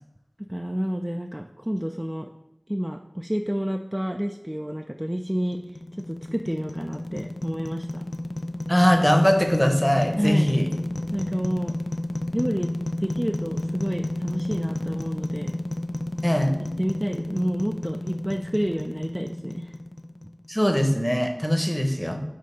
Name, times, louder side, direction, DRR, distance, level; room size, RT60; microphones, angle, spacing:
voice 1, 0.4-2.3 2.7-5.6 6.0-8.0 10.2-10.5 11.1-11.7 12.3-12.7 13.0-15.6 16.6-19.7, equal, 15° right, 3 dB, 0.4 m, -29 dB
sound 1, 5.3-20.5, left 1 dB, 80° left, 0.4 m, -31 dB
voice 2, 8.7-10.7 16.2-16.5 20.5-22.2, equal, 10° left, 4 dB, 0.9 m, -21 dB
5.2 x 3.8 x 5.6 m, 0.88 s
wide cardioid pair, 45°, 0 cm